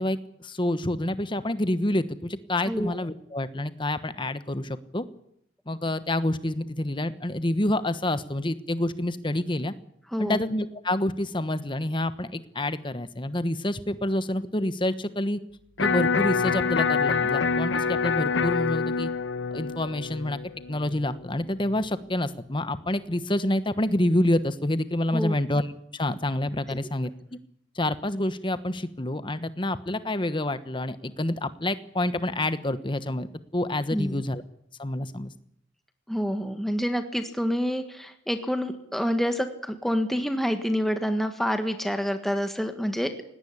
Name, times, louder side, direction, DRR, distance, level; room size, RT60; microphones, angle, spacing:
voice 1, 0.0-5.0 5.7-9.7 10.2-15.4 15.8-19.1 19.5-20.4 20.7-27.4 27.7-34.4 34.8-35.3, left 1 dB, 25° left, 13 dB, 1.2 m, -28 dB
Electric guitar, 15.8-21.8, left 5 dB, 75° left, 1.0 m, -26 dB
voice 2, 33.9-34.2 36.1-43.1, equal, ahead, 6 dB, 1.6 m, -27 dB
19.0 x 17.5 x 9.9 m, 0.73 s
head